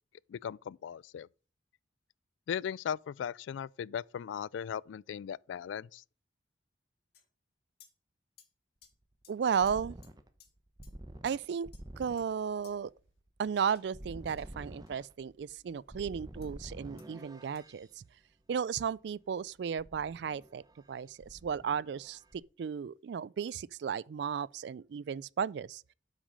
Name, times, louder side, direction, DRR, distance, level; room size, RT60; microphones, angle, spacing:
voice 1, 0.3-1.3 2.5-6.0, left 8 dB, 90° left, 0.3 m, -38 dB
sound 1, 7.1-7.3 7.8-7.9 8.4-8.5 8.8-8.9 9.2-9.3 9.7-9.8 10.0-10.1 10.4-10.5 10.8-10.9 11.3-11.4 11.7-12.3 12.6-12.7 13.7-15.1 16.4-16.5 17.0-17.1 17.6-17.7, left 9 dB, 55° left, 2.2 m, -61 dB
sound 2, 8.8-17.9 19.8-20.9 21.2-22.4, right 1 dB, 20° right, 0.9 m, -49 dB
voice 2, 9.3-10.0 11.2-11.7 12.0-12.9 13.4-18.0 18.5-20.6 20.9-25.8, right 7 dB, 65° right, 0.3 m, -34 dB
8.2 x 6.2 x 5.1 m
head